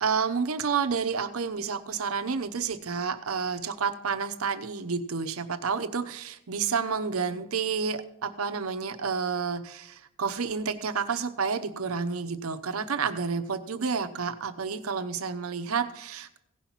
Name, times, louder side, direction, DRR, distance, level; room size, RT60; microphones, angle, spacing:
voice 1, 0.0-16.4, right 5 dB, 80° right, 8 dB, 0.8 m, -30 dB
16.5 x 5.7 x 4.5 m, 0.85 s
head